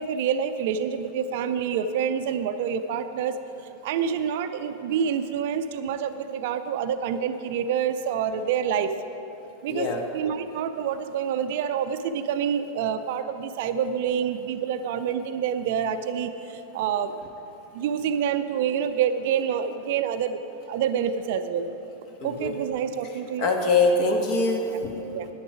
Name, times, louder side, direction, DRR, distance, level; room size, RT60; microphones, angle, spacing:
voice 1, 0.0-3.4 3.8-8.9 9.6-17.1 17.7-20.4 20.7-21.7 22.2-23.5 24.7-24.8 25.1-25.3, right 8 dB, 50° right, 10 dB, 0.4 m, -27 dB
voice 2, 9.7-10.0 22.2-22.6 23.4-24.7, left 3 dB, 40° left, 3 dB, 1.4 m, -23 dB
10.5 x 9.5 x 4.9 m, 3.0 s
figure-of-eight pair, 90°, 0 cm